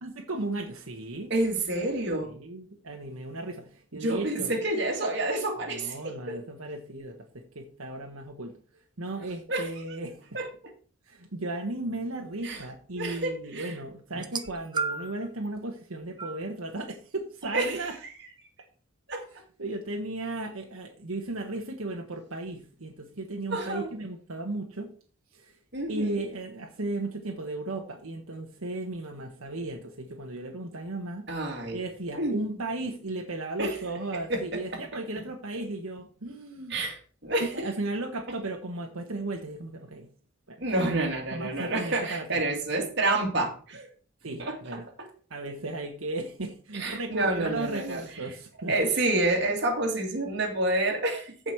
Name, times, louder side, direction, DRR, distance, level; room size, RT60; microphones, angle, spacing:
voice 1, 0.0-1.3 2.3-4.5 5.7-8.5 9.0-10.4 11.1-18.0 19.3-24.9 25.3-25.5 25.9-31.3 31.7-36.8 37.4-40.1 40.5-40.6 41.3-42.4 44.2-44.9 45.3-48.8, right 2 dB, 80° right, 2 dB, 1.3 m, -35 dB
voice 2, 1.3-2.3 3.9-6.4 9.5-9.7 10.3-10.5 12.4-12.6 13.0-13.7 17.5-17.9 19.1-19.2 23.5-23.9 25.7-26.2 31.3-31.8 32.2-32.4 33.6-33.8 34.1-34.8 36.7-37.7 40.6-43.9 44.4-44.6 45.0-45.1 46.7-48.0 48.7-51.5, right 2 dB, 50° right, 1 dB, 2.5 m, -29 dB
sound 1, 14.1-15.3 16.2-16.4 17.4-17.5, right 4 dB, 20° right, 0.6 m, -33 dB
14.5 x 5.3 x 4.6 m, 0.42 s
head